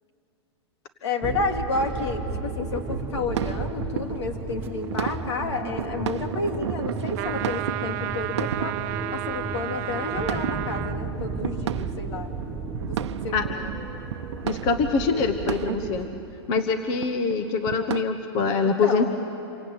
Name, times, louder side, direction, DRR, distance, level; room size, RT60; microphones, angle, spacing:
voice 1, 1.0-8.7 9.1-12.3 12.8-13.0 13.2-13.8 18.5-19.1, left 3 dB, 75° left, 4 dB, 3.0 m, -31 dB
sound 1, 1.2-16.1, right 3 dB, 15° right, 1.3 m, -34 dB
sound 2, 1.7-18.0, right 10 dB, 80° right, 0.8 m, -35 dB
sound 3, 7.1-11.0, right 14 dB, 40° right, 0.7 m, -32 dB
voice 2, 14.4-16.1 16.5-19.1, left 5 dB, 30° left, 7 dB, 1.1 m, -24 dB
27.5 x 24.0 x 8.8 m, 3.0 s
supercardioid pair, 160°, 14 cm